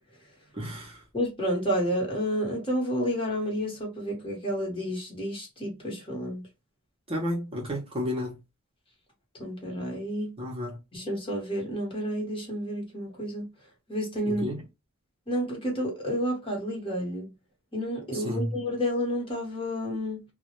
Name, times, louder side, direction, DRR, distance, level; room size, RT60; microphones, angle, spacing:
voice 1, 0.5-1.0 7.1-8.4 10.4-10.8 14.2-14.6 18.1-18.5, equal, 25° right, 0.6 m, -32 dB
voice 2, 1.1-6.4 9.3-10.3 10.9-13.5 13.9-14.5 15.3-17.3 17.7-20.2, equal, 25° left, 1.0 m, -30 dB
2.2 x 2.0 x 2.8 m
head